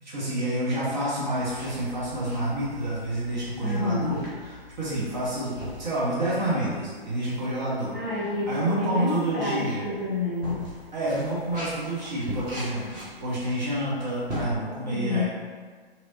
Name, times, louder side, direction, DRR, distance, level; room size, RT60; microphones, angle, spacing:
voice 1, 0.0-7.9 8.5-9.9 10.9-15.2, right 1 dB, 45° right, -8 dB, 0.9 m, -28 dB
sound 1, 1.3-14.4, right 1 dB, 20° right, 0.8 m, -42 dB
voice 2, 3.6-4.2 7.9-9.6 9.8-10.6 14.8-15.2, left 2 dB, ahead, -15 dB, 1.2 m, -29 dB
2.9 x 2.8 x 2.6 m, 1.5 s
figure-of-eight pair, 125°, 31 cm